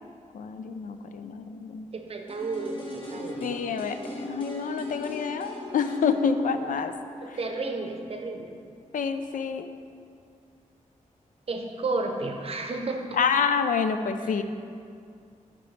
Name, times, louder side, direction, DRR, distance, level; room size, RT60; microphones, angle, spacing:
voice 1, 0.3-1.9 3.4-6.9 7.3-7.4 8.9-9.7 13.1-14.4, left 6 dB, 85° left, 8 dB, 0.4 m, -28 dB
voice 2, 1.9-3.5 7.2-8.5 11.5-13.2 14.2-14.4, right 3 dB, 45° right, 4 dB, 0.7 m, -32 dB
sound 1, 2.3-8.2 8.5-8.6, left 1 dB, 40° left, 1.2 m, -39 dB
9.5 x 5.3 x 3.2 m, 2.4 s
wide cardioid pair, 150°, 13 cm